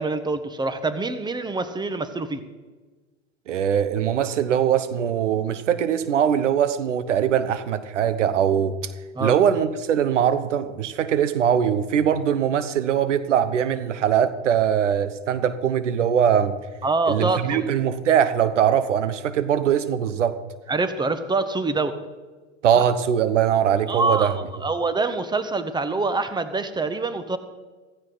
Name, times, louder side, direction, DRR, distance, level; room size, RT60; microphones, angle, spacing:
voice 1, 0.0-2.4 9.1-9.3 16.8-17.7 20.7-22.0 22.8-22.9 23.9-27.4, right 3 dB, 10° right, 11 dB, 1.3 m, -25 dB
voice 2, 3.5-8.9 9.2-16.6 17.1-20.4 22.6-24.3, right 9 dB, 80° right, 14 dB, 1.1 m, -21 dB
15.5 x 14.5 x 4.0 m, 1.3 s
hypercardioid pair, 95°, 36 cm